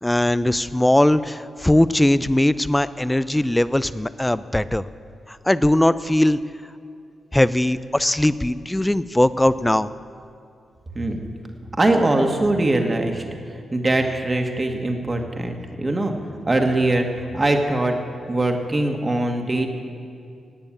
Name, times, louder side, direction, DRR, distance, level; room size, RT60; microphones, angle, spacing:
voice 1, 0.0-4.8 5.3-6.4 7.3-9.9, left 1 dB, 10° left, 15 dB, 0.5 m, -19 dB
voice 2, 11.8-13.2 13.7-16.1 16.5-17.9 18.3-19.7, right 2 dB, 30° right, 3 dB, 1.9 m, -21 dB
18.0 x 7.0 x 8.9 m, 2.4 s
cardioid pair, 70°, 0 cm